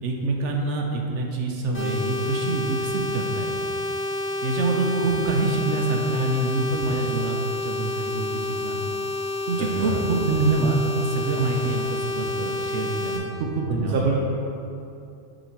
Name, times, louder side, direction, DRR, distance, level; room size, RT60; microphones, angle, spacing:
voice 1, 0.0-3.6 4.4-8.8 9.5-14.0, right 3 dB, 85° right, 1 dB, 1.1 m, -26 dB
sound 1, 1.7-13.2, left 2 dB, 65° left, 1.6 m, -29 dB
voice 2, 9.6-10.0 13.7-14.2, right 4 dB, 55° right, -2 dB, 0.8 m, -25 dB
6.6 x 5.0 x 4.6 m, 2.7 s
omnidirectional pair, 1.2 m